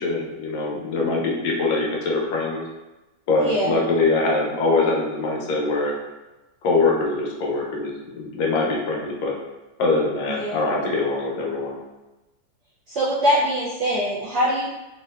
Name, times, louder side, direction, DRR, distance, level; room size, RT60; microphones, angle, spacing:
voice 1, 0.0-2.6 3.3-5.9 6.6-9.3 9.8-11.8, left 3 dB, 70° left, -2 dB, 1.1 m, -23 dB
voice 2, 3.4-3.8 10.3-10.6 12.9-14.7, equal, 85° right, -8 dB, 0.6 m, -23 dB
3.6 x 2.3 x 2.2 m, 1.1 s
omnidirectional pair, 1.9 m